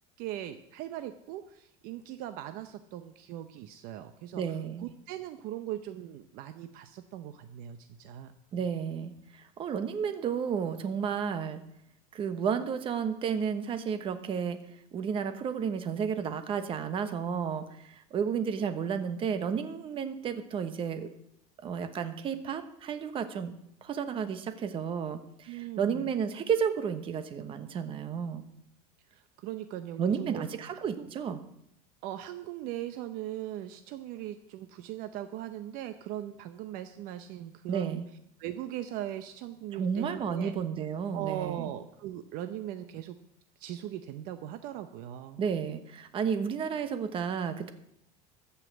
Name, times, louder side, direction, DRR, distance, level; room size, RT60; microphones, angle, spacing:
voice 1, 0.2-8.3 25.5-26.1 29.1-30.4 30.7-31.1 32.0-38.0 38.4-40.5 41.1-43.2 43.6-45.4, right 12 dB, 55° right, 9 dB, 0.8 m, -39 dB
voice 2, 4.3-4.8 8.5-11.6 12.1-14.6 14.9-21.1 21.6-23.5 23.8-28.5 30.0-31.4 37.7-38.0 39.7-41.7 45.4-47.7, right 7 dB, 30° right, 9 dB, 1.1 m, -32 dB
14.0 x 5.8 x 8.1 m, 0.75 s
cardioid pair, 150°, 18 cm